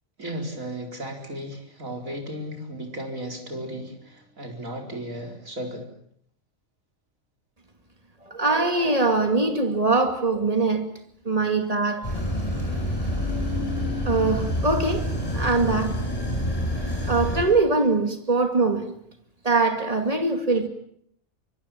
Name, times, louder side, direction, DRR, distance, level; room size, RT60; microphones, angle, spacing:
voice 1, 0.2-5.9, right 1 dB, 80° right, 4.9 m, -35 dB
voice 2, 8.3-10.9 11.2-12.1 13.3-13.4 14.1-16.0 17.1-18.9 19.4-20.7, right 3 dB, 30° right, 2.5 m, -22 dB
sound 1, 12.0-17.4, equal, 25° left, 7.8 m, -27 dB
25.0 x 23.0 x 7.3 m
omnidirectional pair, 1.4 m